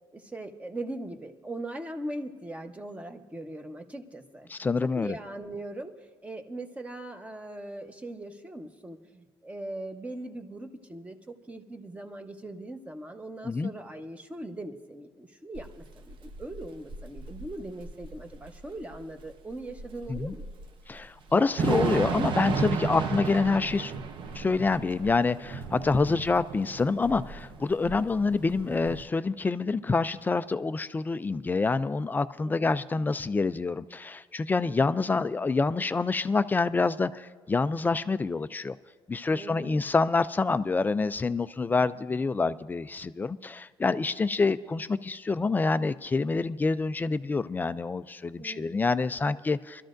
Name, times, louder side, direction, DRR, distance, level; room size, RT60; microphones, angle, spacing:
voice 1, 0.1-4.5 4.8-20.4 25.9-26.2 27.8-27.9 32.4-32.8 34.7-34.9 39.3-39.8 43.9-44.0 48.4-48.9 49.3-49.4, right 1 dB, 15° right, 5 dB, 1.0 m, -40 dB
voice 2, 4.5-5.2 13.4-13.7 20.1-20.3 20.9-23.9 24.3-38.8 39.1-49.8, left 4 dB, 20° left, 13 dB, 0.3 m, -27 dB
Thunder / Rain, 15.5-29.0, right 5 dB, 60° right, 0.8 m, -34 dB
24.5 x 13.0 x 2.6 m, 1.5 s
cardioid pair, 130°, 10 cm